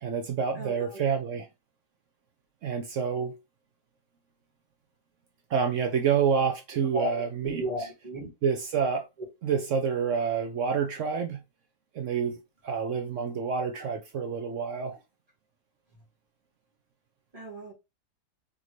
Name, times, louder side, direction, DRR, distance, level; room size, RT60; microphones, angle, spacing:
voice 1, 0.0-1.5 2.6-3.3 5.5-7.6 8.4-9.1 9.4-11.4 11.9-12.4 12.6-15.0, right 6 dB, 65° right, 0.8 m, -28 dB
voice 2, 0.5-1.1 6.9-8.3 9.5-9.7 17.3-17.7, equal, 25° right, 1.9 m, -35 dB
3.8 x 3.6 x 3.1 m
omnidirectional pair, 1.7 m